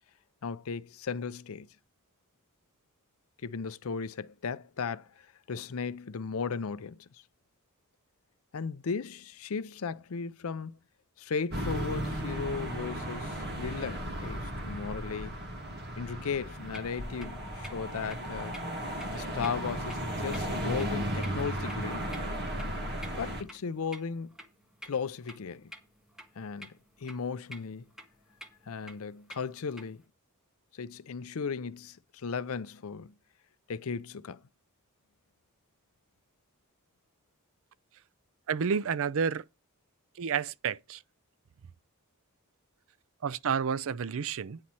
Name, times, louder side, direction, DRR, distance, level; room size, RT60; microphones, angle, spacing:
voice 1, 0.4-1.7 3.4-7.0 8.5-10.7 11.2-15.4 16.0-18.6 19.1-22.1 23.2-24.3 24.8-25.7 26.4-26.7 27.0-27.9 28.7-30.0 30.7-33.1 33.7-34.4, left 5 dB, 65° left, 0.5 m, -36 dB
sound 1, 11.5-23.4, right 1 dB, 50° right, 1.9 m, -35 dB
sound 2, 16.5-30.1, equal, 5° right, 1.6 m, -52 dB
voice 2, 38.5-39.4 40.2-41.0 43.2-44.6, right 6 dB, 65° right, 0.5 m, -30 dB
9.7 x 4.2 x 7.6 m
head